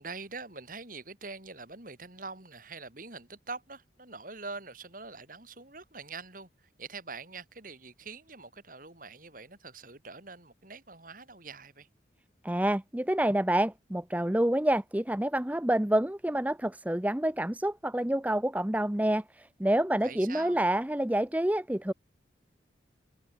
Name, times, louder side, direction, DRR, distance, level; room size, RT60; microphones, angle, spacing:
voice 1, 0.0-11.9 20.0-20.6, right 4 dB, 45° right, 4.1 m, -44 dB
voice 2, 12.4-21.9, right 1 dB, 10° right, 0.6 m, -28 dB
head